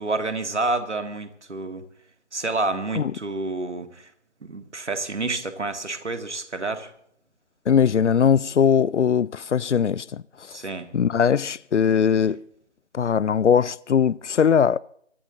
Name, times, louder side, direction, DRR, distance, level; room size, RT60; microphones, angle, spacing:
voice 1, 0.0-1.8 2.3-4.1 4.4-6.9 10.5-10.9, right 3 dB, 75° right, 2.1 m, -29 dB
voice 2, 7.7-10.6 10.9-12.4 12.9-14.8, left 7 dB, 80° left, 0.5 m, -20 dB
24.5 x 11.0 x 3.9 m
figure-of-eight pair, 170°, 35 cm